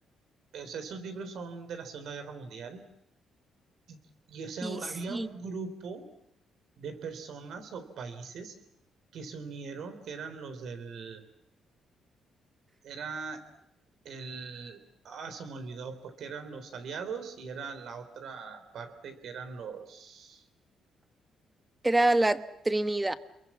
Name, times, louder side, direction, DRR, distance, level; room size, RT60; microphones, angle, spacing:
voice 1, 0.5-2.8 3.9-4.0 4.3-6.1 6.8-8.6 9.1-11.3 12.8-13.4 14.0-20.4, right 5 dB, 70° right, 8 dB, 3.8 m, -40 dB
voice 2, 21.8-23.1, right 2 dB, 15° right, 11 dB, 1.3 m, -26 dB
28.5 x 22.5 x 7.4 m, 0.79 s
cardioid pair, 90°, 0 cm